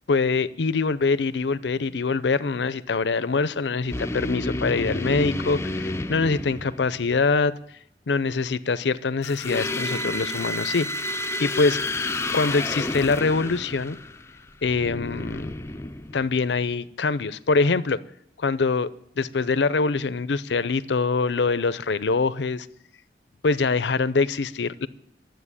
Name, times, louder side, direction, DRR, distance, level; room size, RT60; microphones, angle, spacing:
voice 1, 0.1-7.5 8.1-10.9 11.4-11.8 12.3-14.0 14.6-15.5 16.1-18.0 18.4-18.9 19.2-22.7 23.4-24.9, left 4 dB, 80° left, 0.6 m, -24 dB
sound 1, 3.9-7.2 9.2-16.5, left 2 dB, 15° left, 0.5 m, -30 dB
12.5 x 7.8 x 9.7 m
head